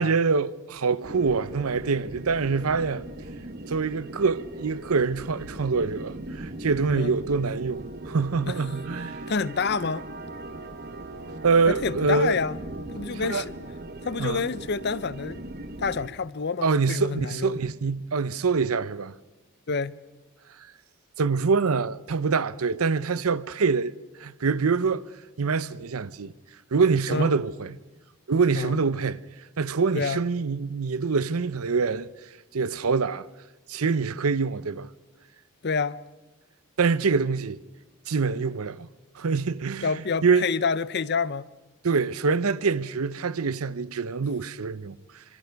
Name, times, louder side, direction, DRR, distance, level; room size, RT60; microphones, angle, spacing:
voice 1, 0.0-3.0 3.7-9.2 11.4-12.4 13.2-13.4 14.2-14.4 16.6-19.1 21.2-25.1 25.4-26.3 26.7-27.8 28.3-29.2 29.6-32.1 32.5-33.3 33.7-34.9 36.8-37.6 38.1-38.9 39.1-40.5 41.8-45.2, right 4 dB, 85° right, 0.7 m, -25 dB
sound 1, 1.0-16.1, right 2 dB, 45° right, 1.2 m, -39 dB
voice 2, 9.3-10.1 11.7-12.6 12.9-13.5 14.0-15.4 15.8-17.6 19.7-19.9 27.1-27.3 28.5-28.8 29.9-30.2 35.6-36.0 39.8-41.5, left 5 dB, 50° left, 0.6 m, -28 dB
28.0 x 26.0 x 4.7 m
head